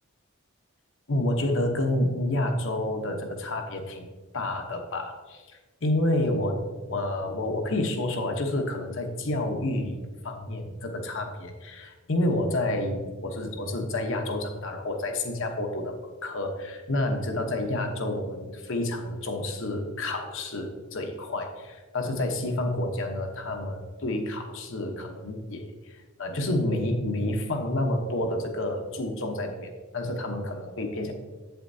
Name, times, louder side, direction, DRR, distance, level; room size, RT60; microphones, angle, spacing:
voice 1, 1.1-4.1 4.3-5.4 5.8-6.6 6.9-10.0 10.2-15.9 16.2-31.1, left 1 dB, 65° left, 4 dB, 1.0 m, -29 dB
8.0 x 7.8 x 2.7 m, 1.3 s
head